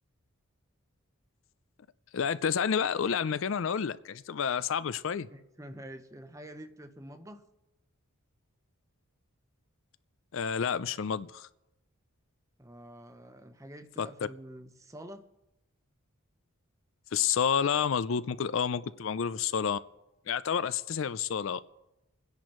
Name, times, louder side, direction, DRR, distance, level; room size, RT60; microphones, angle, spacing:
voice 1, 2.1-5.3 10.3-11.5 14.0-14.1 17.1-19.8 20.3-21.6, left 7 dB, 60° left, 15 dB, 0.4 m, -29 dB
voice 2, 5.3-7.5 12.6-15.3, right 1 dB, 15° right, 8 dB, 0.7 m, -47 dB
27.5 x 10.5 x 3.1 m, 0.93 s
head